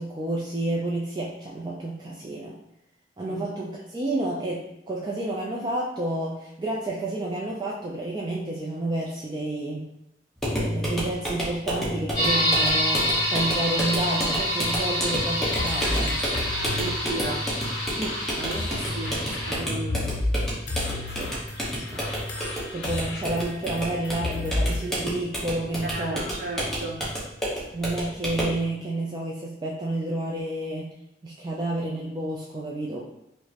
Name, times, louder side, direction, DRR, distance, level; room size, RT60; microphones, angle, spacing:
voice 1, 0.0-2.6 3.2-9.9 10.5-16.2 18.0-18.2 21.2-21.4 21.9-22.1 22.7-26.2 27.7-31.0 31.2-33.0, right 1 dB, 25° right, -4 dB, 0.4 m, -30 dB
sound 1, 10.4-28.6, equal, 5° left, 0.9 m, -31 dB
sound 2, 12.1-19.6, equal, 20° left, 1.2 m, -27 dB
sound 3, 15.5-24.9, left 2 dB, 65° left, 0.6 m, -32 dB
voice 2, 16.6-17.5 18.4-20.1 25.8-27.0, right 2 dB, 50° right, -2 dB, 0.8 m, -34 dB
4.8 x 2.1 x 2.8 m, 0.82 s
head